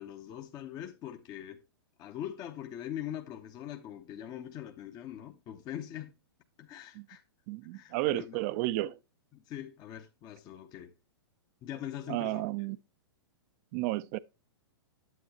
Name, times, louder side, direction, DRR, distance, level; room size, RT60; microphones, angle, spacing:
voice 1, 0.0-1.6 2.0-6.1 6.6-7.2 7.7-8.4 9.3-10.9 11.6-12.5, left 11 dB, 30° left, 0.9 m, -42 dB
voice 2, 7.5-9.0 12.1-12.8 13.7-14.2, right 18 dB, 40° right, 0.5 m, -32 dB
9.4 x 8.5 x 2.9 m
hypercardioid pair, 115°, 13 cm